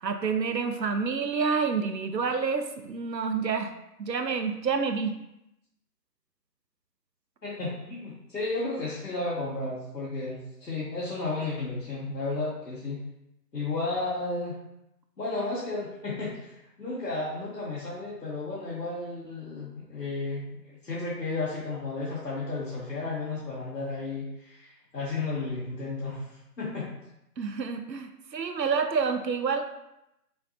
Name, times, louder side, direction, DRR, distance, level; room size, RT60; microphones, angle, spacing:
voice 1, 0.0-3.7 4.0-5.2 27.4-29.6, right 5 dB, 85° right, 7 dB, 0.7 m, -28 dB
voice 2, 7.4-13.0 13.5-14.5 15.2-26.9, left 3 dB, 75° left, -8 dB, 1.3 m, -33 dB
5.7 x 2.7 x 2.7 m, 0.86 s
figure-of-eight pair, 160°, 49 cm